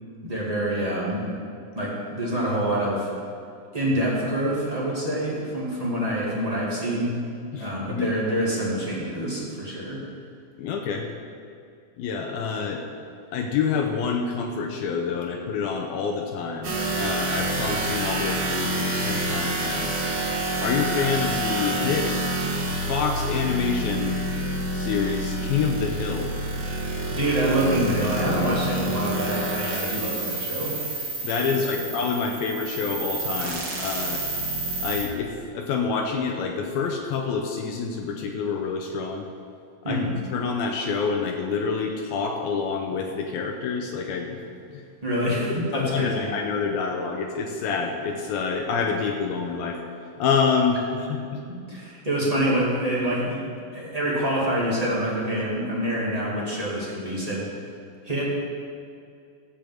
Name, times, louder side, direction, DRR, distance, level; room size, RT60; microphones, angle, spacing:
voice 1, 0.2-1.2 1.7-3.1 3.7-7.2 7.6-10.0 26.7-26.8 27.1-30.7 31.7-31.9 39.8-40.1 45.0-46.3 51.5-53.4 53.7-57.5 58.0-58.3, right 1 dB, 20° right, -7 dB, 1.1 m, -26 dB
voice 2, 7.5-8.1 10.6-11.1 12.0-12.8 13.3-19.9 20.6-22.1 22.7-24.2 24.7-26.3 31.2-34.2 34.8-39.3 39.9-40.0 40.3-44.4 44.7-44.8 45.5-49.8 50.2-51.4, left 5 dB, 75° left, 2 dB, 2.4 m, -27 dB
sound 1, 16.6-35.0, right 1 dB, 75° right, 1.1 m, -28 dB
14.0 x 5.2 x 7.7 m, 2.3 s
omnidirectional pair, 4.7 m